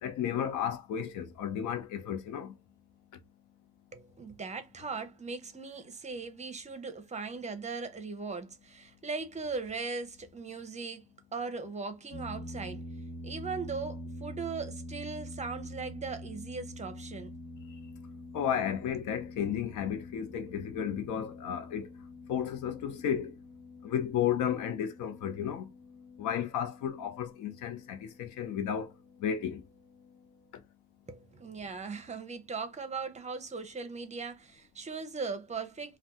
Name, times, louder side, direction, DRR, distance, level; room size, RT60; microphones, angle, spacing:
voice 1, 0.0-2.5 18.3-21.9 22.3-23.3 23.8-25.7 26.2-28.9 29.2-29.6, left 9 dB, 85° left, 0.7 m, -33 dB
voice 2, 3.9-12.8 13.2-17.3 31.1-36.0, right 4 dB, 25° right, 0.7 m, -39 dB
sound 1, 12.1-30.5, left 1 dB, 55° left, 1.4 m, -46 dB
2.6 x 2.3 x 3.5 m
cardioid pair, 90°, 30 cm